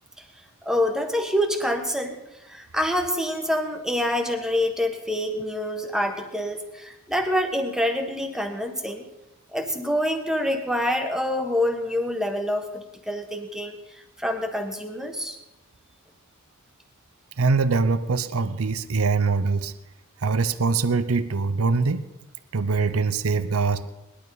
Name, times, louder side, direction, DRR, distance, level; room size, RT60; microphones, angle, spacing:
voice 1, 0.6-2.2 2.5-9.1 9.5-13.8 14.2-15.4, left 1 dB, 5° right, 4 dB, 1.4 m, -26 dB
voice 2, 17.4-19.7 20.2-22.1 22.5-23.9, right 4 dB, 75° right, 13 dB, 0.7 m, -23 dB
19.5 x 11.5 x 4.1 m, 0.93 s
head